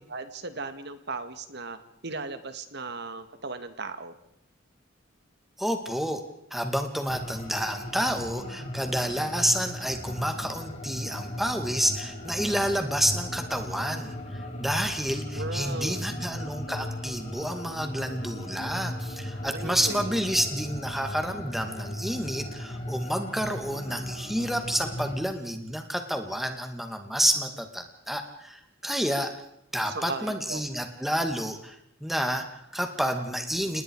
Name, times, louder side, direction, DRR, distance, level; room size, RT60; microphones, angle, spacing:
voice 1, 0.1-1.8 2.0-4.2 15.3-16.0 19.5-20.3 29.8-30.6, right 3 dB, 60° right, 10 dB, 2.0 m, -37 dB
voice 2, 5.6-6.2 6.5-29.3 29.7-33.8, equal, ahead, 5 dB, 2.4 m, -29 dB
sound 1, 7.1-25.1, left 1 dB, 35° left, 5.1 m, -37 dB
29.0 x 20.0 x 4.8 m, 0.78 s
head